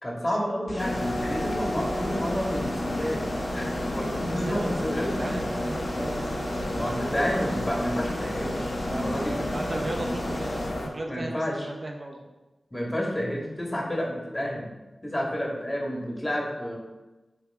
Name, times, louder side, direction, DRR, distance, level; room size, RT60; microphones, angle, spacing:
voice 1, 0.0-5.2 6.7-9.5 11.1-11.7 12.7-14.7 15.0-16.8, equal, 25° left, -2 dB, 2.0 m, -30 dB
sound 1, 0.7-10.7, equal, 45° left, 1.7 m, -37 dB
sound 2, 0.8-10.9, left 1 dB, 75° left, 1.0 m, -31 dB
voice 2, 4.2-6.7 8.9-12.3, right 1 dB, 50° right, 2 dB, 0.8 m, -36 dB
7.8 x 3.5 x 3.7 m, 1.1 s
cardioid pair, 45°, 0 cm